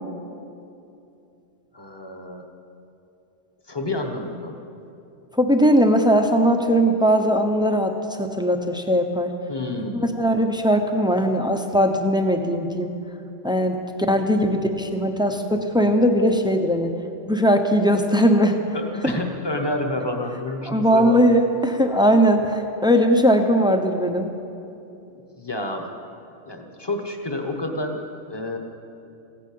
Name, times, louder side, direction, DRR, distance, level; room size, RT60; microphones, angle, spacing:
voice 1, 1.7-2.5 3.7-4.6 9.5-10.0 18.7-21.3 25.4-25.9 26.5-28.0 28.3-28.6, left 2 dB, 20° left, 4 dB, 1.3 m, -29 dB
voice 2, 5.3-9.3 9.9-12.9 13.4-17.0 17.3-18.6 19.0-19.2 20.7-24.3, equal, 5° right, 5 dB, 0.8 m, -19 dB
16.0 x 10.5 x 8.7 m, 2.7 s
omnidirectional pair, 1.3 m